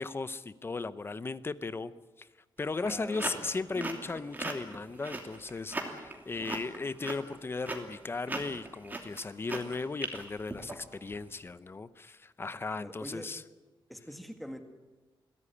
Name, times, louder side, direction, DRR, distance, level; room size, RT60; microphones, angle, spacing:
voice 1, 0.0-1.9 2.2-2.3 2.6-13.4, left 3 dB, 25° left, 15 dB, 0.7 m, -36 dB
sound 1, 2.6-11.2, right 2 dB, 20° right, 2.8 m, -39 dB
voice 2, 2.8-3.7 12.8-13.3 13.9-14.6, equal, ahead, 6 dB, 2.0 m, -44 dB
22.5 x 16.0 x 9.8 m, 1.2 s
wide cardioid pair, 145°, 9 cm